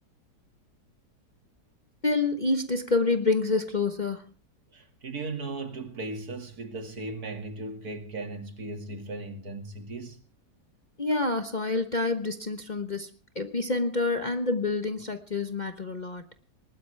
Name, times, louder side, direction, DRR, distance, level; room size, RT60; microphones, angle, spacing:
voice 1, 2.0-4.2 11.0-13.1 13.3-16.3, left 3 dB, 30° left, 1.0 m, -27 dB
voice 2, 4.7-10.2, right 2 dB, 60° right, 2.7 m, -37 dB
20.5 x 19.5 x 3.4 m
omnidirectional pair, 1.9 m